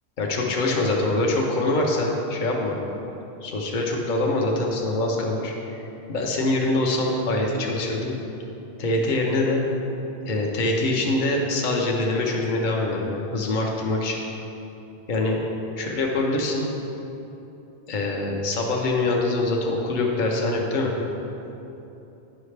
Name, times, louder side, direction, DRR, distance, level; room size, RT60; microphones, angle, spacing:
voice 1, 0.2-2.8 3.4-5.8 6.1-8.1 8.8-9.6 10.2-14.2 15.1-15.4 15.8-16.7 17.9-20.9, left 2 dB, 50° left, -1 dB, 0.9 m, -24 dB
9.9 x 5.5 x 3.3 m, 3.0 s
omnidirectional pair, 1.1 m